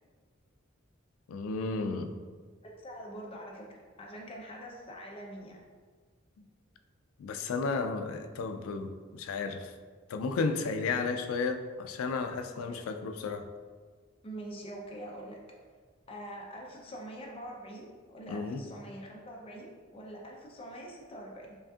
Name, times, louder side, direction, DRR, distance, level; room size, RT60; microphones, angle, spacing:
voice 1, 1.3-2.2 6.4-6.5 7.2-9.7 10.1-13.5 18.3-18.6, left 4 dB, 80° left, 7 dB, 0.3 m, -33 dB
voice 2, 2.6-3.7 4.0-5.6 12.7-12.8 14.2-15.4 16.1-21.6, right 1 dB, 25° left, -1 dB, 0.6 m, -44 dB
5.2 x 2.5 x 2.4 m, 1.5 s
head